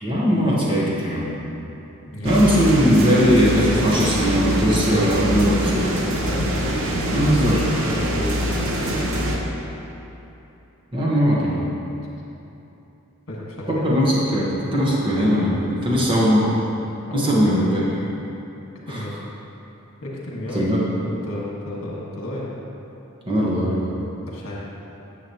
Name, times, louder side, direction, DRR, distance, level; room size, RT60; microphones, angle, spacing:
voice 1, 0.0-1.3 2.2-5.9 7.1-7.7 10.9-11.7 13.7-16.6 17.1-17.8 18.9-19.0 20.5-20.9 23.3-24.0, equal, 25° right, -6 dB, 1.2 m, -19 dB
voice 2, 2.1-2.4 6.2-6.5 7.8-9.0 13.3-13.8 17.1-17.8 18.9-19.2 20.0-20.6 21.0-22.5 24.3-24.6, left 1 dB, 65° left, -4 dB, 1.7 m, -33 dB
sound 1, 2.2-9.4, equal, 75° right, 0.9 m, -24 dB
10.0 x 7.0 x 3.0 m, 2.9 s
head